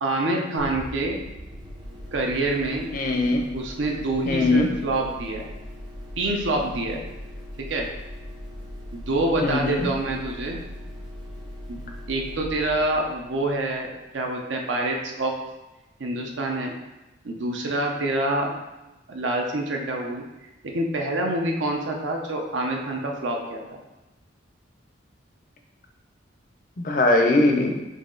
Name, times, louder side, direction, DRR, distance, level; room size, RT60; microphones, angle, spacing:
voice 1, 0.0-1.2 2.1-2.9 3.5-5.5 6.2-7.0 7.7-7.9 8.9-10.6 11.7-11.8 12.1-15.3 16.0-16.7 17.2-18.5 19.1-20.2 20.6-23.8, right 2 dB, 70° right, 1 dB, 0.6 m, -26 dB
sound 1, 0.6-14.0, equal, 25° right, 0.6 m, -40 dB
voice 2, 2.9-3.5 4.3-4.7 9.4-9.9 26.8-27.7, left 2 dB, 40° left, 3 dB, 0.5 m, -21 dB
4.1 x 3.1 x 3.7 m, 1.0 s
head